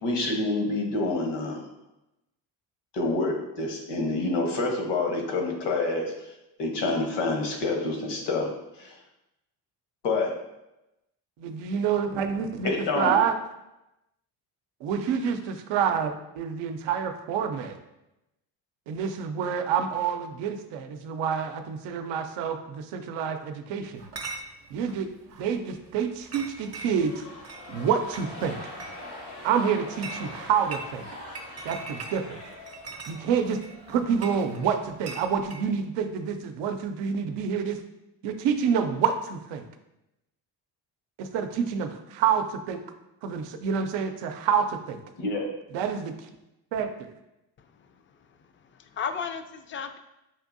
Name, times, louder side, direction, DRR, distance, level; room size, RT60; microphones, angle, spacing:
voice 1, 0.0-1.7 2.9-6.1 6.6-8.5 8.8-9.0 10.0-10.3 12.6-13.1 45.2-45.5, left 2 dB, 75° left, 1 dB, 1.1 m, -27 dB
voice 2, 11.4-12.7 12.9-13.3 14.8-17.8 18.9-24.0 24.7-25.1 25.4-27.2 27.7-28.6 29.4-31.0 31.6-32.4 33.1-33.6 33.9-37.8 38.2-39.6 41.2-42.8 43.2-45.0 45.7-46.3 46.7-47.1, right 7 dB, 80° right, 6 dB, 0.6 m, -27 dB
Chatter / Chink clink, 24.0-35.7, right 3 dB, 35° right, 0.6 m, -43 dB
sound 1, 26.8-35.3, left 1 dB, 90° left, 1.5 m, -44 dB
voice 3, 47.6-48.0 48.6-50.0, left 6 dB, 30° left, 8 dB, 0.4 m, -35 dB
5.6 x 2.6 x 2.5 m, 0.91 s
supercardioid pair, 70°, 43 cm